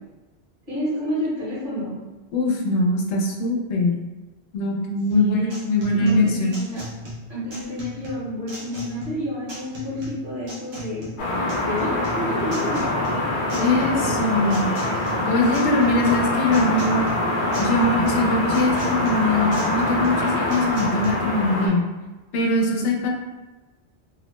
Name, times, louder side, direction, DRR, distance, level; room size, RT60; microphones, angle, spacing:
voice 1, 0.7-2.0 5.2-5.6 5.9-6.8 7.3-11.1 11.6-12.8 13.4-14.2 22.7-23.1, equal, 50° right, -8 dB, 1.3 m, -30 dB
voice 2, 2.3-3.9 4.5-5.4 5.6-6.5 13.6-14.7 15.3-17.1 17.6-21.8 22.3-23.1, left 2 dB, 85° left, 0 dB, 0.9 m, -22 dB
sound 1, 5.1-21.1, equal, 70° right, 0.9 m, -38 dB
sound 2, 11.2-21.7, left 1 dB, 60° left, 0.6 m, -24 dB
2.8 x 2.0 x 3.0 m, 1.2 s
omnidirectional pair, 1.1 m